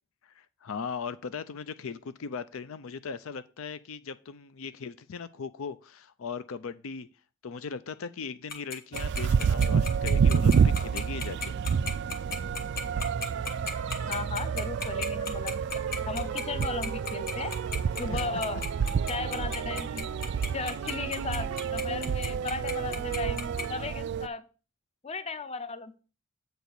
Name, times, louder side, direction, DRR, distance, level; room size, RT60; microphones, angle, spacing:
voice 1, 0.2-7.1 7.4-11.5 18.1-18.2, left 5 dB, 65° left, 0.5 m, -38 dB
Tick-tock, 8.5-23.6, left 5 dB, 45° left, 1.4 m, -34 dB
sound 1, 8.9-24.3, right 6 dB, 55° right, 0.3 m, -29 dB
metal guitar riff cln, 12.9-23.9, right 6 dB, 80° right, 0.7 m, -46 dB
voice 2, 14.1-15.6 16.1-17.5 18.0-18.6 19.1-20.1 20.5-24.4 25.0-26.0, left 4 dB, 30° left, 0.6 m, -36 dB
8.1 x 4.3 x 6.5 m
head